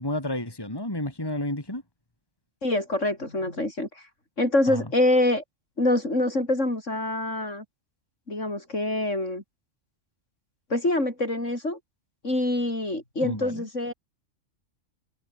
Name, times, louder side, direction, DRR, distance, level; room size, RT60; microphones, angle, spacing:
voice 1, 0.0-1.8 4.7-4.8 13.2-13.6, left 1 dB, 15° left, 3.8 m, -31 dB
voice 2, 2.6-4.0 4.4-5.4 5.8-7.6 8.3-9.4 10.7-11.8 12.2-13.9, left 1 dB, 65° left, 7.4 m, -25 dB
omnidirectional pair, 1.4 m